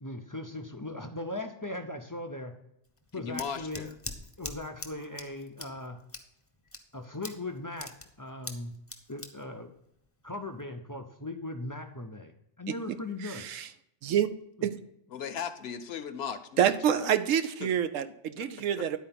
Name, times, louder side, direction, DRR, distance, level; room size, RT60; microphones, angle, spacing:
voice 1, 0.0-2.5 3.1-3.9 4.4-6.0 6.9-7.9 8.2-8.7 9.1-9.7 10.2-13.4, left 2 dB, 30° left, 5 dB, 0.3 m, -38 dB
Scissors, 2.8-10.6, left 2 dB, 15° left, 0.7 m, -45 dB
voice 2, 3.2-4.0 15.1-17.1 17.6-17.7 18.4-18.5, left 7 dB, 60° left, 10 dB, 0.9 m, -37 dB
voice 3, 13.2-13.7 14.0-14.3 14.6-14.7 16.6-19.0, right 9 dB, 80° right, 11 dB, 1.0 m, -27 dB
10.5 x 4.4 x 5.8 m, 0.78 s
omnidirectional pair, 1.3 m